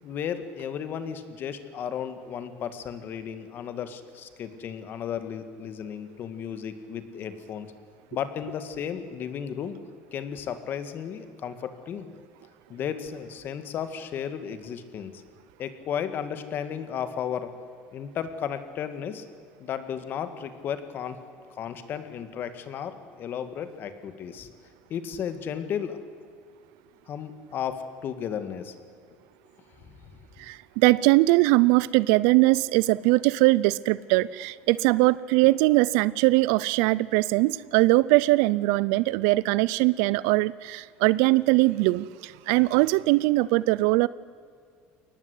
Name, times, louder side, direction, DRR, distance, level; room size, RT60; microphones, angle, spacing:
voice 1, 0.0-7.7 8.1-9.8 10.1-12.1 12.7-15.2 15.6-17.5 17.9-19.3 19.6-21.2 21.5-24.5 24.9-26.0 27.1-28.8 29.9-30.1, left 8 dB, 45° left, 10 dB, 2.0 m, -34 dB
voice 2, 30.4-44.1, right 20 dB, 80° right, 20 dB, 0.5 m, -21 dB
22.5 x 18.5 x 8.4 m, 2.1 s
cardioid pair, 125°, 5 cm